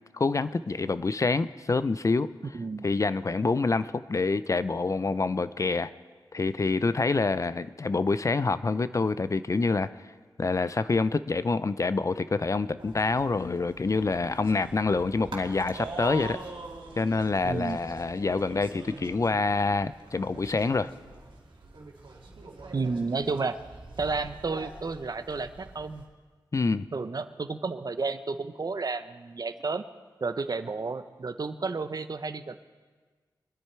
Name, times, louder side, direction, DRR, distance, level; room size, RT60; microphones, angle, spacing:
voice 1, 0.1-2.3 2.8-5.9 6.3-9.9 10.4-16.4 17.0-20.9 26.5-26.9, left 3 dB, 40° left, 14 dB, 0.4 m, -26 dB
voice 2, 2.5-2.9 17.4-17.8 22.7-23.6 24.0-26.0 26.9-29.8 30.2-32.6, right 4 dB, 50° right, 11 dB, 0.7 m, -31 dB
sound 1, 12.8-26.0, right 2 dB, 75° right, 2.2 m, -44 dB
24.0 x 10.0 x 4.5 m, 1.4 s
cardioid pair, 65°, 8 cm